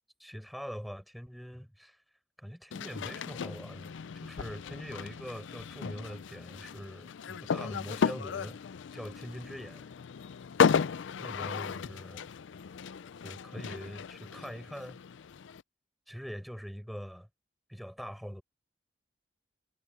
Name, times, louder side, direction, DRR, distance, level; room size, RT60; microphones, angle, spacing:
voice 1, 0.2-2.0 2.4-8.6 8.9-9.9 11.2-12.3 13.2-15.0 16.1-17.3 17.7-18.4, equal, ahead, 5.7 m, -43 dB
sound 1, 2.7-15.6, left 6 dB, 85° left, 0.4 m, -34 dB
head